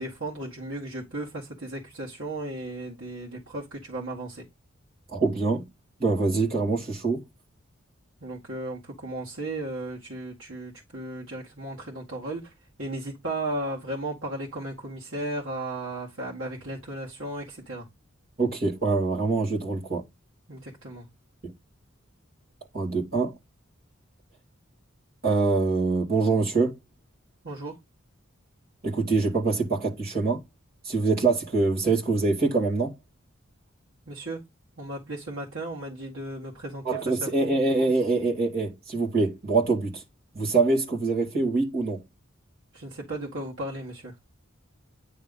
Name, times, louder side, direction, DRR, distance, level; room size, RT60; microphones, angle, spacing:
voice 1, 0.0-4.5 8.2-12.5 12.8-17.9 20.5-21.1 27.4-27.8 34.1-34.4 34.8-37.5 42.7-44.1, right 1 dB, 75° right, 2.0 m, -35 dB
voice 2, 5.1-5.7 6.0-7.2 18.4-20.0 21.4-21.5 22.7-23.3 25.2-26.8 28.8-30.4 30.8-33.0 36.8-40.0 40.3-42.0, right 3 dB, 45° right, 2.5 m, -24 dB
9.5 x 3.5 x 5.4 m
head